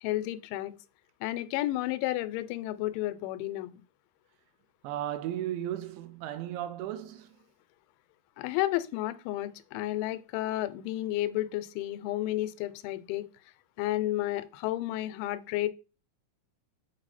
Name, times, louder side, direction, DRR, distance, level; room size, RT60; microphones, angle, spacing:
voice 1, 0.0-0.7 1.2-3.8 8.4-13.3 13.8-15.7, left 15 dB, 90° left, 3.0 m, -32 dB
voice 2, 4.8-7.4, right 12 dB, 85° right, 2.8 m, -35 dB
7.7 x 4.8 x 4.1 m
omnidirectional pair, 5.3 m